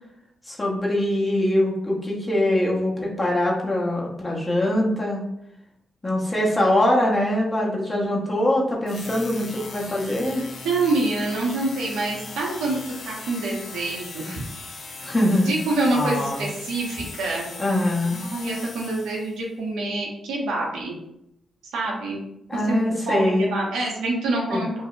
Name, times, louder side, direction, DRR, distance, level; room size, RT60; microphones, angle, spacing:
voice 1, 0.4-5.2 6.0-10.5 15.0-15.6 16.0-16.5 17.6-18.2 22.5-23.5 24.5-24.6, left 1 dB, 25° left, -3 dB, 1.0 m, -23 dB
sound 1, 8.9-19.4, left 3 dB, 70° left, 0.5 m, -39 dB
voice 2, 10.6-14.4 15.5-17.5 18.1-21.0 21.7-22.2 22.5-22.8 23.1-24.9, right 2 dB, 85° right, -2 dB, 0.7 m, -26 dB
2.6 x 2.0 x 3.7 m, 0.81 s
supercardioid pair, 50°, 0 cm